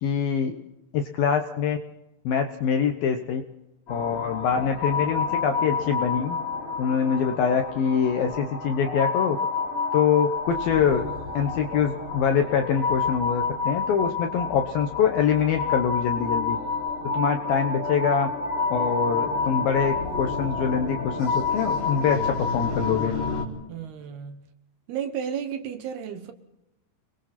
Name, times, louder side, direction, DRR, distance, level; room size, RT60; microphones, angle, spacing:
voice 1, 0.0-0.5 0.9-1.8 2.2-3.4 3.9-6.4 6.8-9.4 9.9-11.0 11.3-16.6 17.1-18.3 18.7-23.1, left 7 dB, 75° left, 2.3 m, -24 dB
sound 1, 3.9-23.4, left 4 dB, 25° left, 4.1 m, -29 dB
voice 2, 23.7-24.4 24.9-26.3, right 8 dB, 70° right, 2.7 m, -33 dB
29.0 x 22.0 x 4.3 m
omnidirectional pair, 5.5 m